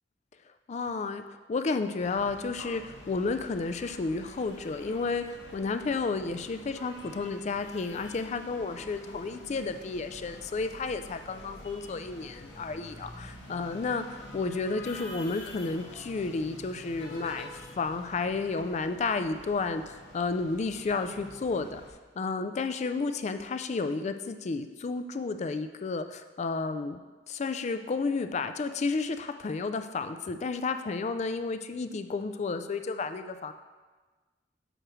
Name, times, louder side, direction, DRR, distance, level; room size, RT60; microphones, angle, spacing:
voice 1, 0.7-1.2 1.5-21.8 22.2-27.0 27.3-33.5, left 4 dB, 40° left, 9 dB, 0.3 m, -32 dB
sound 1, 2.0-21.9, left 1 dB, 85° left, 1.2 m, -47 dB
7.9 x 5.9 x 3.1 m, 1.3 s
head